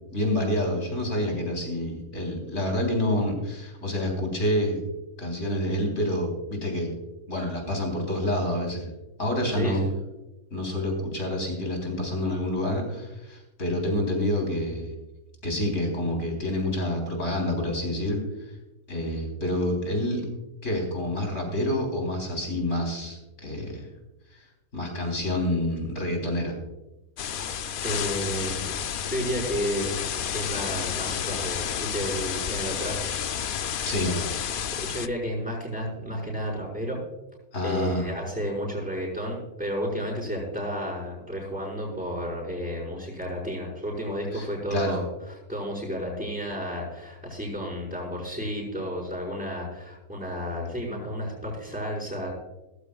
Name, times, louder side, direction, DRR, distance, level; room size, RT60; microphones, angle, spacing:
voice 1, 0.1-4.8 5.2-6.9 7.3-8.9 9.2-9.8 10.5-14.9 15.4-18.2 18.9-20.3 20.6-23.9 24.3-24.4 24.7-26.5 33.8-34.1 37.5-38.1 44.3-45.0, left 1 dB, 55° left, 1 dB, 4.2 m, -28 dB
voice 2, 9.5-9.9 27.8-28.7 29.0-29.9 30.3-33.0 33.3-33.5 34.0-34.2 34.8-37.0 37.6-52.3, equal, 5° right, -10 dB, 5.2 m, -32 dB
sound 1, 27.2-35.1, left 8 dB, 85° left, 0.4 m, -31 dB
18.0 x 14.5 x 2.4 m, 1.0 s
omnidirectional pair, 1.5 m